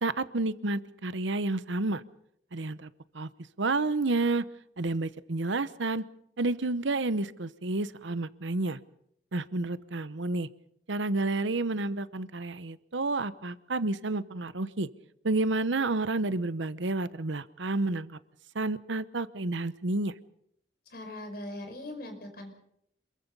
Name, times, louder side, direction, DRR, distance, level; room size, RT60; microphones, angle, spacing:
voice 1, 0.0-2.0 2.5-3.3 3.6-4.4 4.8-6.0 6.4-8.8 9.3-10.5 10.9-14.9 15.2-18.2 18.5-20.1, right 2 dB, 80° right, 14 dB, 1.0 m, -30 dB
voice 2, 20.9-22.5, left 1 dB, 55° left, 5 dB, 5.3 m, -40 dB
27.0 x 22.5 x 5.4 m, 0.72 s
head